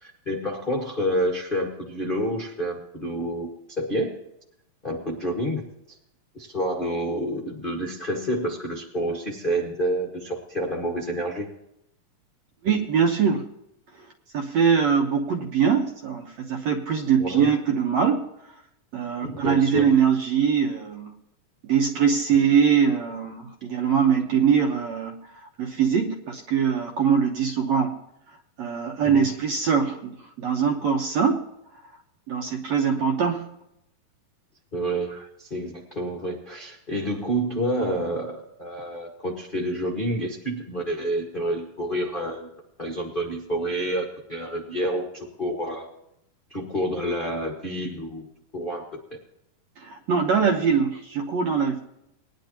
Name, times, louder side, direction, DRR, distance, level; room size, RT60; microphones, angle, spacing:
voice 1, 0.0-3.5 3.8-4.1 4.8-5.6 6.3-11.5 17.2-17.5 19.2-19.9 22.3-22.4 29.0-29.3 34.7-42.5 42.8-45.9 46.5-48.3 48.5-48.8, right 1 dB, 40° left, -3 dB, 0.7 m, -28 dB
voice 2, 12.6-13.5 14.3-18.2 18.9-21.1 21.6-25.2 25.6-28.0 28.6-31.4 32.3-33.4 49.8-51.8, right 7 dB, 65° right, 1 dB, 1.9 m, -22 dB
20.5 x 10.5 x 2.9 m, 0.81 s
omnidirectional pair, 4.1 m